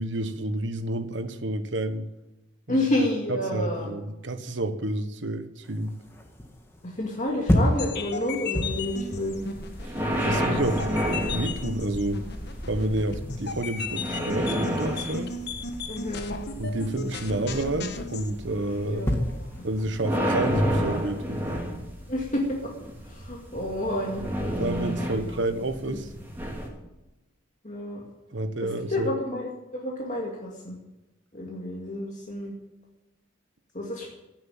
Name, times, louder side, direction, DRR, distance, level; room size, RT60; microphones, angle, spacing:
voice 1, 0.0-2.1 2.7-2.9 3.3-5.9 10.2-10.9 11.3-12.2 12.7-15.3 16.6-19.1 19.6-21.4 24.6-26.1 28.3-29.1, right 1 dB, 65° right, 10 dB, 1.2 m, -29 dB
voice 2, 2.7-3.9 6.8-9.4 10.2-10.6 15.9-16.4 18.9-19.4 22.1-22.7 23.0-24.2 25.1-25.2 25.9-26.0 27.6-28.0 28.6-30.8 31.3-32.5 33.7-34.1, left 1 dB, 35° left, -2 dB, 2.3 m, -30 dB
sound 1, 5.6-21.6, equal, 10° left, 1.9 m, -34 dB
sound 2, 7.6-18.3, left 4 dB, 55° left, 1.3 m, -36 dB
sound 3, 8.7-26.7, equal, 10° right, 3.0 m, -31 dB
16.5 x 7.7 x 9.1 m, 0.98 s
head